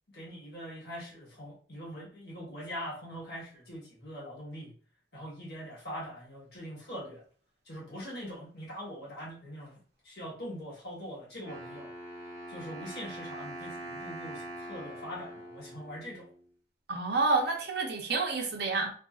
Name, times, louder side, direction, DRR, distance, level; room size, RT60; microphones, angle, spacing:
voice 1, 0.1-4.7 5.1-7.2 7.6-11.9 12.5-16.3, equal, 55° left, 1.1 m, -42 dB
Wind instrument woodwind instrument, 11.4-16.4, right 1 dB, 15° right, 0.8 m, -43 dB
voice 2, 16.9-18.9, right 3 dB, 55° right, 0.6 m, -29 dB
2.7 x 2.6 x 2.3 m
head